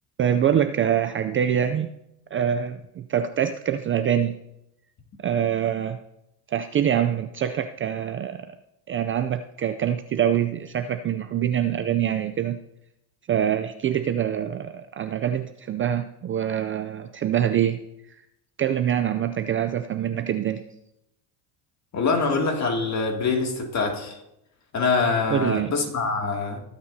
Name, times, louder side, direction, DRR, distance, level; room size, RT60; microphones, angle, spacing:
voice 1, 0.2-1.9 2.3-4.4 5.2-6.0 6.5-8.5 8.9-12.6 13.3-17.8 18.1-18.2 18.6-20.6 25.3-25.7, right 9 dB, 30° right, 9 dB, 0.4 m, -25 dB
voice 2, 21.9-24.2 24.7-26.6, left 4 dB, 35° left, 2 dB, 2.4 m, -24 dB
19.5 x 8.8 x 2.7 m, 0.84 s
supercardioid pair, 110°, 45 cm